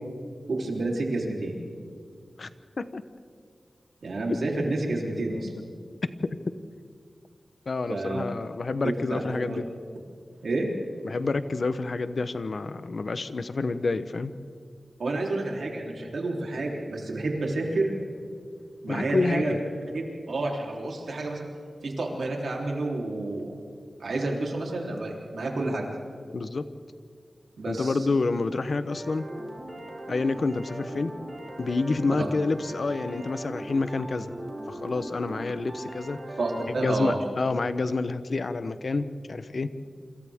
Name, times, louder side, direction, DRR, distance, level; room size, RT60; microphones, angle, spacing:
voice 1, 0.5-1.5 4.0-5.5 7.9-8.2 9.1-9.6 10.4-10.7 15.0-17.9 18.8-19.5 19.9-21.4 21.8-23.5 24.0-25.8 27.6-28.0 32.2-32.3 36.4-37.2, right 2 dB, 85° right, -1 dB, 3.5 m, -29 dB
voice 2, 7.7-9.6 11.0-14.3 18.9-19.6 26.3-26.7 27.7-29.2 30.1-31.1 31.6-34.3 34.7-36.2 36.8-39.7, left 3 dB, 65° left, 12 dB, 0.9 m, -28 dB
sound 1, 28.9-37.0, right 1 dB, 35° right, 5.0 m, -39 dB
28.0 x 26.0 x 3.6 m, 2.2 s
wide cardioid pair, 80°, 0 cm